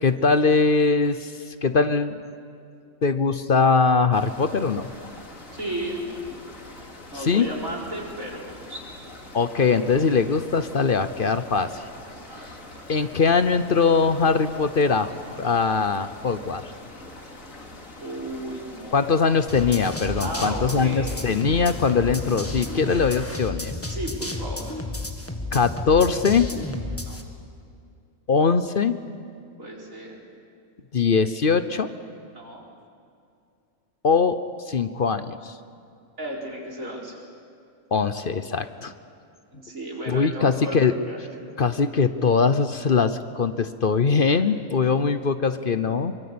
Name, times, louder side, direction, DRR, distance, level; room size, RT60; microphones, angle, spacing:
voice 1, 0.0-2.2 3.0-4.9 7.1-7.5 9.3-11.8 12.9-16.7 18.9-23.7 25.5-26.5 28.3-29.0 30.9-31.9 34.0-34.4 34.7-35.5 37.9-38.9 40.1-40.9 41.6-46.1, left 5 dB, 45° left, 11 dB, 0.9 m, -21 dB
sound 1, 4.1-23.3, left 2 dB, 90° left, 3.0 m, -44 dB
voice 2, 5.5-6.0 7.1-8.8 12.3-12.5 18.0-19.1 20.2-21.2 23.9-24.7 27.1-27.2 29.6-30.2 32.3-32.7 36.2-37.1 39.5-41.2, right 1 dB, 85° right, -2 dB, 5.2 m, -34 dB
sound 2, 19.5-27.2, left 2 dB, 10° left, 1.6 m, -32 dB
25.0 x 24.0 x 8.7 m, 2.4 s
omnidirectional pair, 1.4 m